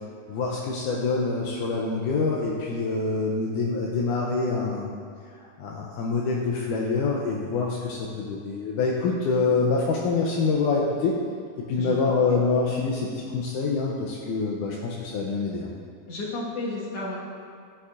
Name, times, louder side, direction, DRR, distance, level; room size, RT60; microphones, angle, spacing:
voice 1, 0.3-4.9 5.3-11.1 11.7-15.7, left 4 dB, 80° left, -2 dB, 1.9 m, -26 dB
voice 2, 11.8-12.4 16.1-17.2, left 2 dB, 50° left, -6 dB, 2.3 m, -33 dB
14.0 x 7.0 x 2.5 m, 2.2 s
omnidirectional pair, 4.2 m